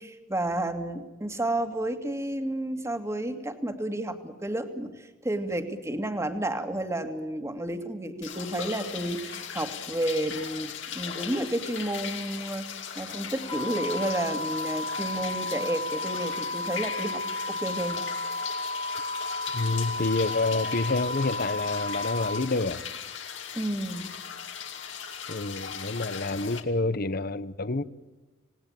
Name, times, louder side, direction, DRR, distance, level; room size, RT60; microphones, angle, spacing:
voice 1, 0.0-18.0 23.5-24.1, right 1 dB, 15° right, 2.2 m, -31 dB
sound 1, 8.2-26.6, left 7 dB, 70° left, 2.7 m, -38 dB
sound 2, 13.5-22.4, left 2 dB, 20° left, 2.1 m, -33 dB
voice 2, 19.5-22.8 25.3-27.8, left 3 dB, 50° left, 1.0 m, -28 dB
27.5 x 19.5 x 9.1 m
head